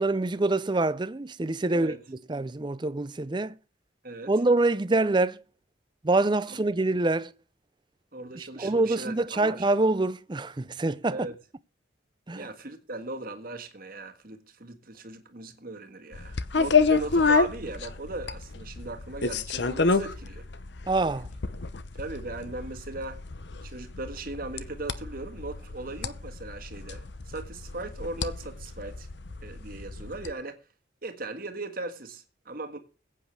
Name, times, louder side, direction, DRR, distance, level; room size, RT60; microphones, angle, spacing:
voice 1, 0.0-3.6 4.3-5.4 6.0-7.3 8.4-11.3 12.3-12.5 20.9-21.3, right 2 dB, 25° right, 0.5 m, -26 dB
voice 2, 1.7-2.0 4.0-4.3 6.5-6.6 8.1-9.7 11.1-11.3 12.3-20.5 22.0-23.2 23.6-29.1 29.4-30.6 31.0-32.8, right 2 dB, 50° right, 1.7 m, -38 dB
sound 1, 16.1-30.3, left 4 dB, 60° left, 0.8 m, -29 dB
21.5 x 8.6 x 3.3 m
head